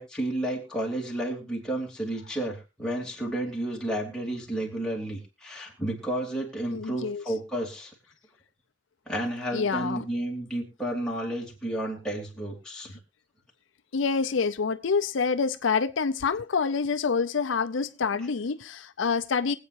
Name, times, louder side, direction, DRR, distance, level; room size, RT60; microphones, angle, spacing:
voice 1, 0.0-7.9 9.1-13.0, right 1 dB, 5° left, 2.9 m, -32 dB
voice 2, 6.7-7.2 9.5-10.0 13.9-19.6, left 5 dB, 75° left, 0.5 m, -27 dB
24.0 x 8.3 x 2.6 m
head